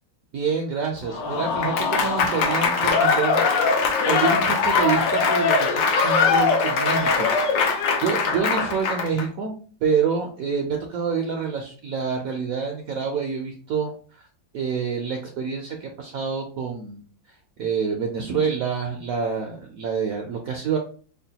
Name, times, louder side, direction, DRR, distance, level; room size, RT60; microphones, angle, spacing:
voice 1, 0.3-3.8 4.1-5.5 5.9-7.3 8.0-9.5 9.8-14.2 14.5-17.0 17.6-20.8, right 6 dB, 70° right, 2 dB, 0.8 m, -27 dB
Applause / Crowd, 1.1-9.2, left 4 dB, 80° left, 1.4 m, -21 dB
5.6 x 2.2 x 2.8 m, 0.43 s
omnidirectional pair, 2.0 m